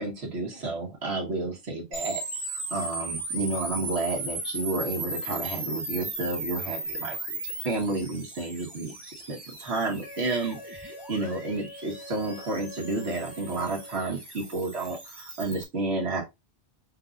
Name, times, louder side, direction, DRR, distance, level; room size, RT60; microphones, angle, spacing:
voice 1, 0.0-7.4 7.6-16.2, right 2 dB, 90° right, 1.6 m, -31 dB
sound 1, 1.9-15.6, right 2 dB, 25° right, 1.1 m, -37 dB
Wind instrument woodwind instrument, 10.0-14.1, left 1 dB, 80° left, 1.5 m, -45 dB
5.1 x 3.9 x 2.5 m
omnidirectional pair, 1.1 m